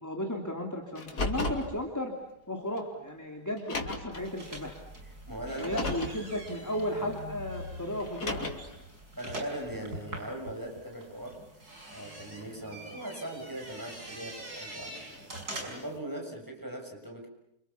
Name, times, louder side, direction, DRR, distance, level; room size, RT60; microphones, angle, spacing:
voice 1, 0.0-2.1 2.5-4.7 5.6-8.6, left 1 dB, 10° left, 2 dB, 2.9 m, -34 dB
Car, 1.0-1.7 2.8-2.9 3.6-4.2 5.5-6.2 8.0-8.7, left 2 dB, 75° left, 3.6 m, -33 dB
sound 1, 4.1-16.0, right 1 dB, 70° right, 6.3 m, -44 dB
voice 2, 5.3-6.0 6.9-7.1 9.2-11.4 11.9-17.3, right 1 dB, 10° right, 1 dB, 6.8 m, -40 dB
29.5 x 27.0 x 7.1 m, 0.83 s
omnidirectional pair, 1.7 m